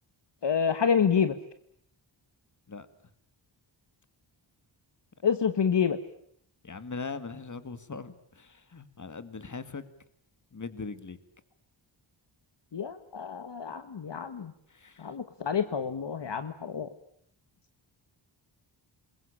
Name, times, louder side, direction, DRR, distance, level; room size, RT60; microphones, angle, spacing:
voice 1, 0.4-1.3 5.2-6.0 12.7-14.5 15.0-16.9, left 7 dB, 60° left, 10 dB, 1.5 m, -28 dB
voice 2, 6.6-9.8 10.5-11.2 14.7-15.1, left 4 dB, 40° left, 12 dB, 2.1 m, -40 dB
28.5 x 21.5 x 8.7 m, 0.68 s
wide cardioid pair, 135°, 47 cm